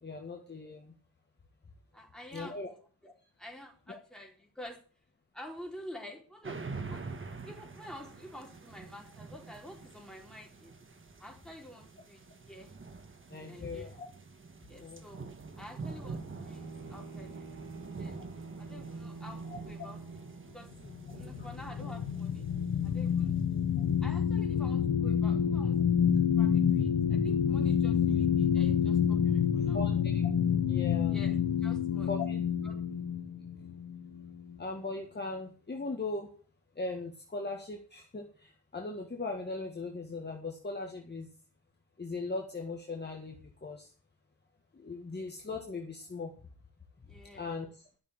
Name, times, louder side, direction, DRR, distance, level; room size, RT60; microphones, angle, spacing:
voice 1, 0.0-0.9 2.3-2.7 3.9-4.0 13.3-14.1 14.8-15.1 19.5-19.6 21.4-21.5 29.7-31.2 32.1-32.4 34.6-36.3 36.8-41.3 42.0-43.9 44.7-46.3 47.4-47.8, left 3 dB, 25° left, 1 dB, 1.8 m, -39 dB
voice 2, 1.9-2.6 3.0-3.1 3.4-4.8 5.3-7.0 7.5-10.7 11.2-12.7 13.3-13.9 14.7-15.2 15.6-16.6 16.9-18.1 18.6-20.0 20.5-20.7 21.1-22.4 22.8-23.4 24.0-26.0 26.4-29.8 31.1-31.4 31.6-32.1 32.6-32.8 47.1-47.5, left 1 dB, ahead, -1 dB, 4.2 m, -49 dB
sound 1, 6.4-24.3, right 4 dB, 30° right, 1.5 m, -46 dB
Bowed string instrument, 16.1-20.9, right 3 dB, 60° right, 2.3 m, -47 dB
sound 2, 20.8-34.5, left 8 dB, 85° left, 1.2 m, -28 dB
13.0 x 6.6 x 8.8 m, 0.41 s
wide cardioid pair, 150°, 39 cm